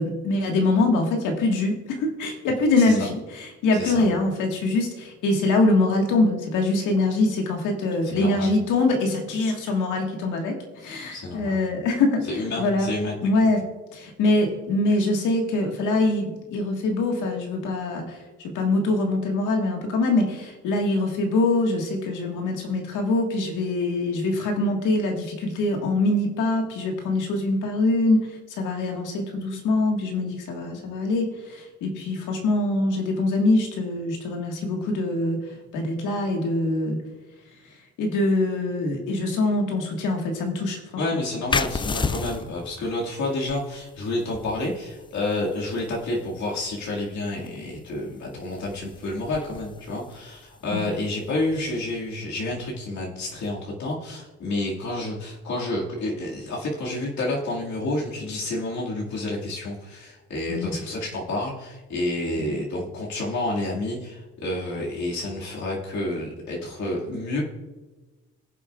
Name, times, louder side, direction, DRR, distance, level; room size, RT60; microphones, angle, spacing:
voice 1, 0.0-12.2 12.6-12.9 13.2-13.6 13.9-37.0 38.0-41.0 50.7-50.9 60.5-60.7 62.4-62.6, left 2 dB, 90° left, 2 dB, 1.7 m, -24 dB
voice 2, 2.8-3.1 3.7-4.0 8.1-8.5 11.1-11.6 12.3-13.1 41.0-67.4, left 2 dB, 65° left, -4 dB, 2.2 m, -29 dB
sound 1, 41.5-52.8, left 4 dB, 15° left, 0.3 m, -35 dB
19.0 x 7.4 x 2.4 m, 1.2 s
cardioid pair, 90°, 30 cm